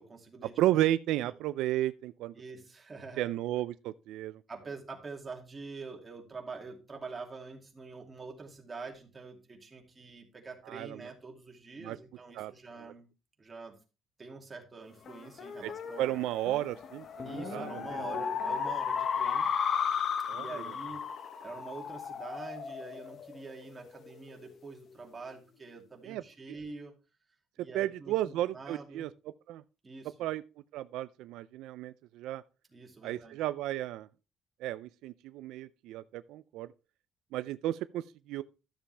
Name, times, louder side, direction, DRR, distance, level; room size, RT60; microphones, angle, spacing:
voice 1, 0.0-0.5 2.3-3.3 4.5-13.1 13.4-13.8 14.2-16.2 17.2-19.5 20.3-21.1 21.4-26.9 27.6-29.1 29.8-30.1 32.7-33.4, right 4 dB, 20° right, 2.6 m, -45 dB
voice 2, 0.6-2.3 3.2-4.4 10.7-11.0 11.8-12.0 12.4-12.5 15.6-15.7 16.0-18.2 20.3-20.6 26.0-26.2 27.7-29.1 29.5-29.6 30.2-30.4 30.7-32.4 33.0-34.1 34.6-36.7 37.3-38.4, right 14 dB, 85° right, 0.4 m, -33 dB
sound 1, 15.1-23.9, left 7 dB, 45° left, 1.0 m, -35 dB
12.5 x 7.2 x 3.3 m
cardioid pair, 135°, 0 cm